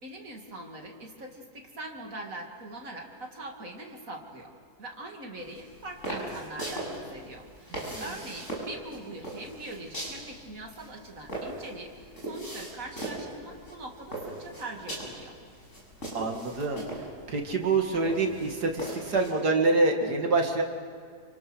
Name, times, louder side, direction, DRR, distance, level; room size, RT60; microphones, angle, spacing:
voice 1, 0.0-4.5 4.8-15.3, right 2 dB, 55° right, 1 dB, 3.1 m, -42 dB
sound 1, 5.4-19.3, right 1 dB, 45° left, 6.9 m, -40 dB
voice 2, 7.7-8.0 16.1-16.8 17.3-20.6, right 3 dB, 70° right, 2 dB, 2.9 m, -26 dB
29.0 x 25.5 x 6.4 m, 2.1 s
omnidirectional pair, 1.8 m